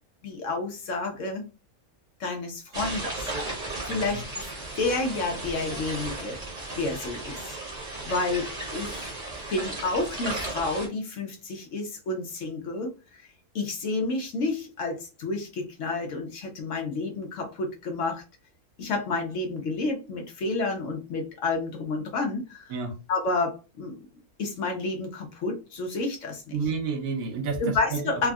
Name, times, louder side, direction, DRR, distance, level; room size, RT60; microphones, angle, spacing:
voice 1, 0.2-1.5 2.2-3.3 3.8-4.5 4.8-6.4 6.8-7.6 8.1-9.1 9.5-13.3 13.5-18.2 18.8-22.7 23.1-23.9 24.4-26.4 27.6-28.3, left 3 dB, 65° left, 0.9 m, -30 dB
sound 1, 2.7-10.9, right 2 dB, 30° right, 1.0 m, -35 dB
voice 2, 3.9-4.2 9.1-9.5 22.7-23.0 26.5-28.2, right 5 dB, 75° right, 1.1 m, -31 dB
3.5 x 2.1 x 2.3 m
omnidirectional pair, 1.6 m